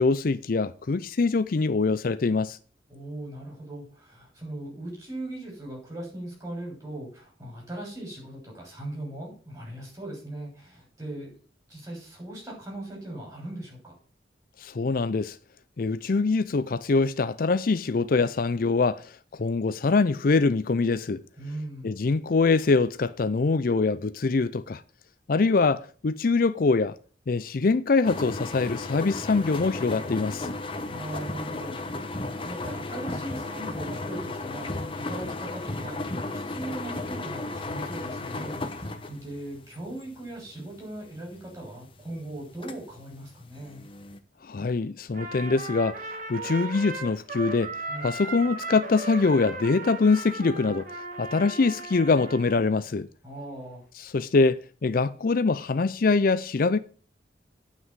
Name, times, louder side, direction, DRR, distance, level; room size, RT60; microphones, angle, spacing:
voice 1, 0.0-2.6 14.6-15.4 15.8-21.2 21.8-24.8 25.3-26.9 27.3-30.5 44.4-46.0 46.3-47.8 48.0-53.1 54.0-56.8, left 4 dB, 50° left, 0.5 m, -24 dB
voice 2, 2.9-11.3 11.7-13.9 21.4-21.9 30.8-43.9 47.9-48.1 53.2-53.9, right 1 dB, 20° right, 6.6 m, -39 dB
sound 1, 28.0-44.2, left 2 dB, 30° left, 1.0 m, -35 dB
Trumpet, 45.1-52.7, right 2 dB, 45° right, 1.9 m, -37 dB
9.4 x 6.1 x 8.0 m
head